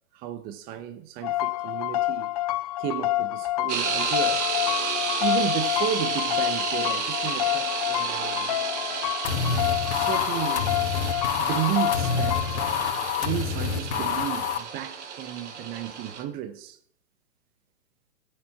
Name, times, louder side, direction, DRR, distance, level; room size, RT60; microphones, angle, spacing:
voice 1, 0.1-2.3 2.8-4.4 5.2-8.6 9.9-10.7 11.4-12.9 13.2-16.8, right 11 dB, 25° right, 1.1 m, -33 dB
sound 1, 1.2-12.7, left 16 dB, 30° left, 0.5 m, -28 dB
sound 2, 3.7-16.2, right 6 dB, 60° right, 2.4 m, -32 dB
sound 3, 9.2-14.6, left 6 dB, 55° left, 2.0 m, -28 dB
16.0 x 8.6 x 6.0 m
hypercardioid pair, 125°, 40 cm